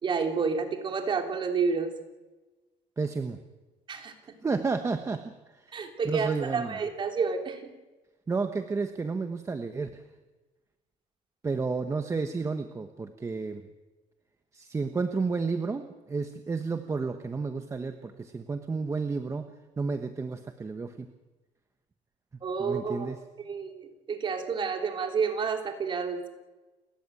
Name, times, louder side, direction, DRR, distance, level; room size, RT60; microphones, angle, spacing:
voice 1, 0.0-1.9 3.9-4.1 5.7-7.7 22.4-23.1 23.4-26.3, right 5 dB, 40° right, 4 dB, 3.4 m, -30 dB
voice 2, 3.0-3.4 4.4-6.8 8.3-10.0 11.4-13.7 14.5-19.5 19.8-21.1 22.6-23.2, right 4 dB, 20° right, 7 dB, 1.2 m, -31 dB
29.5 x 14.5 x 9.2 m, 1.2 s
cardioid pair, 135°, 13 cm